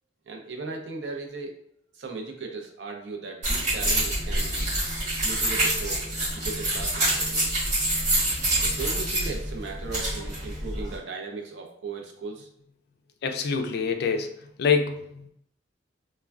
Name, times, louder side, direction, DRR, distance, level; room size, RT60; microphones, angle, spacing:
voice 1, 0.3-1.5 1.9-4.8 5.2-6.0 6.3-7.5 8.6-12.5, right 4 dB, 70° right, 2 dB, 0.5 m, -37 dB
sound 1, 3.4-11.0, right 1 dB, 40° right, 1.3 m, -26 dB
voice 2, 13.2-14.3 14.6-15.3, left 5 dB, 60° left, 6 dB, 0.3 m, -25 dB
3.3 x 2.2 x 2.3 m, 0.71 s
head